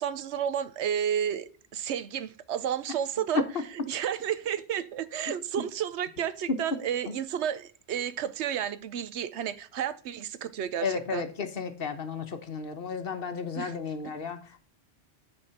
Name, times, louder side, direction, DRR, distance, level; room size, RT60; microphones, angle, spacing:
voice 1, 0.0-3.4 3.7-11.3 13.6-13.7 14.0-14.1, right 9 dB, 90° right, 1.0 m, -32 dB
voice 2, 10.8-14.6, left 5 dB, 60° left, 1.2 m, -33 dB
9.4 x 4.4 x 5.7 m
omnidirectional pair, 1.1 m